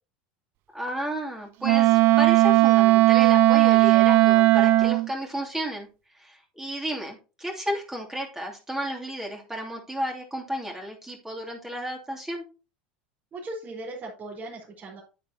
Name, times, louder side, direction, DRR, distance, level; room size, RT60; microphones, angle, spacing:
voice 1, 0.7-5.9 6.1-12.4, equal, 10° right, -1 dB, 2.8 m, -33 dB
Wind instrument woodwind instrument, 1.6-5.1, right 19 dB, 55° right, 0.4 m, -17 dB
voice 2, 13.3-15.0, right 2 dB, 35° right, -2 dB, 4.3 m, -38 dB
9.5 x 9.0 x 2.9 m, 0.33 s
hypercardioid pair, 85°, 5 cm